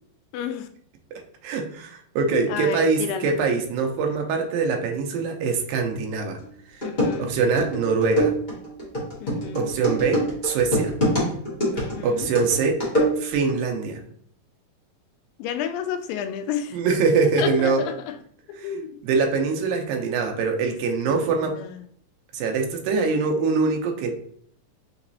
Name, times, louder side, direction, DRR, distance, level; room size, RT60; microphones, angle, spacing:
voice 1, 0.3-0.7 2.5-3.3 6.8-7.3 9.2-9.7 11.7-12.3 15.4-16.8 17.4-17.9 18.5-18.9 21.1-21.3 21.6-21.7, left 8 dB, 85° left, 8 dB, 2.3 m, -31 dB
voice 2, 1.4-6.4 6.7-6.9 7.2-8.4 9.5-10.9 12.0-12.8 13.2-14.0 16.7-17.9 18.6-21.6 22.3-24.1, right 4 dB, 90° right, 3 dB, 2.4 m, -23 dB
sound 1, 6.4-6.5 6.8-13.5, equal, 45° left, 0.6 m, -25 dB
5.8 x 3.0 x 2.7 m, 0.63 s
omnidirectional pair, 4.0 m